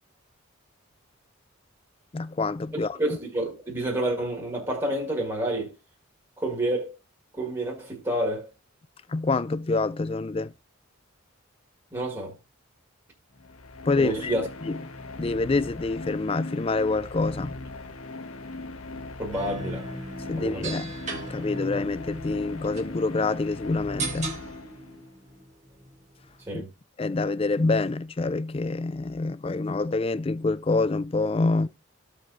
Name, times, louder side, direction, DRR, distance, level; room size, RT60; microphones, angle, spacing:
voice 1, 2.1-3.0 9.1-10.5 13.9-14.3 14.6-14.8 15.2-17.6 20.3-20.9 21.3-24.4 26.5-26.6 27.0-31.7, left 3 dB, 25° left, 0.4 m, -26 dB
voice 2, 3.0-5.7 6.4-7.0 7.4-8.5 11.9-12.3 14.0-14.5 19.2-19.9 20.4-20.8 26.5-26.7, right 1 dB, 15° right, 1.7 m, -29 dB
sound 1, 13.3-25.1, left 2 dB, 85° left, 1.3 m, -39 dB
sound 2, 19.3-26.5, right 3 dB, 35° right, 1.8 m, -39 dB
15.0 x 5.1 x 2.6 m
head